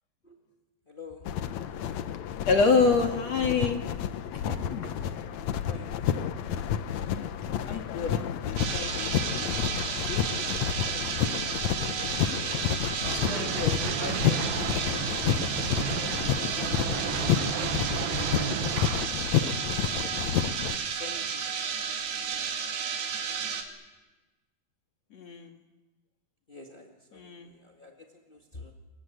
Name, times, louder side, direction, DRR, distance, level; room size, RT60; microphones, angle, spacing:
voice 1, 0.9-1.3 3.1-3.5 5.6-6.1 10.9-11.6 15.8-17.1 19.4-19.9 20.6-21.5 26.5-28.7, left 3 dB, 30° left, 1 dB, 1.0 m, -49 dB
sound 1, 1.2-20.8, left 9 dB, 70° left, 1.8 m, -30 dB
voice 2, 2.5-3.8 4.4-4.6 4.8-5.1 7.7-9.5 13.1-14.8 25.1-25.6 27.1-27.5, left 4 dB, 50° left, 4 dB, 2.6 m, -28 dB
sound 2, 8.6-23.6, right 7 dB, 90° right, 4.4 m, -32 dB
sound 3, 13.0-19.1, right 10 dB, 70° right, 2.9 m, -34 dB
28.5 x 23.0 x 8.1 m, 1.2 s
omnidirectional pair, 4.4 m